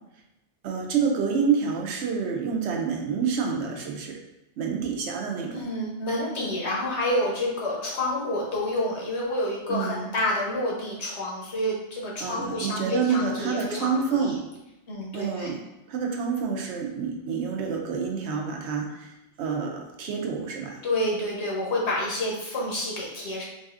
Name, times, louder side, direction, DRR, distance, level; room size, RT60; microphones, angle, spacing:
voice 1, 0.6-4.2 4.6-5.7 9.7-10.1 12.2-14.4 15.1-15.6 15.9-19.1 19.4-20.8, right 5 dB, 80° right, 1 dB, 0.9 m, -28 dB
voice 2, 5.5-14.3 14.9-15.5 20.8-23.4, left 1 dB, 75° left, -4 dB, 1.2 m, -29 dB
3.9 x 2.7 x 2.4 m, 0.94 s
omnidirectional pair, 1.1 m